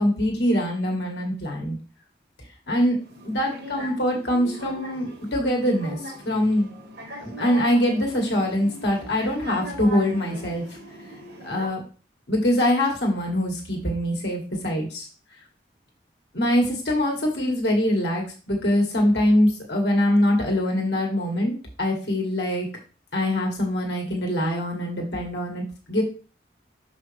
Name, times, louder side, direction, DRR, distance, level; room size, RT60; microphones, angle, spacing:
voice 1, 0.0-1.8 2.7-3.0 3.2-6.7 7.2-10.7 11.4-11.8 12.3-15.1 16.3-22.7 23.1-26.0, left 1 dB, 80° left, 0 dB, 1.9 m, -23 dB
sound 1, 3.0-11.7, equal, 75° right, 2.1 m, -40 dB
6.5 x 5.2 x 3.4 m, 0.36 s
head